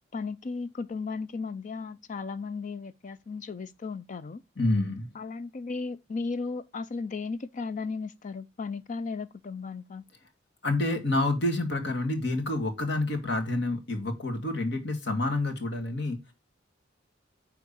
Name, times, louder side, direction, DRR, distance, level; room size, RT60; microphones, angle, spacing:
voice 1, 0.1-4.4 5.2-10.0, left 4 dB, 40° left, 0.4 m, -35 dB
voice 2, 4.6-5.1 10.6-16.2, left 2 dB, 60° left, 2.1 m, -28 dB
9.4 x 3.6 x 6.9 m
head